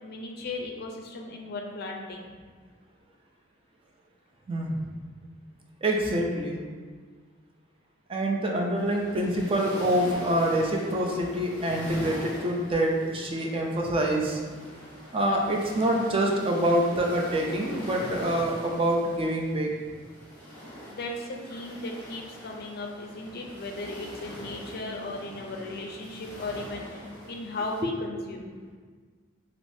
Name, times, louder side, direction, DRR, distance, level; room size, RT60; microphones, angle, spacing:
voice 1, 0.0-2.3 20.9-28.5, left 2 dB, 55° left, 1 dB, 0.4 m, -36 dB
voice 2, 5.8-6.6 8.1-14.4 15.1-19.7, right 1 dB, 30° right, 0 dB, 0.4 m, -26 dB
sound 1, 8.7-27.8, equal, 10° left, 1.3 m, -43 dB
3.4 x 2.9 x 2.6 m, 1.5 s
head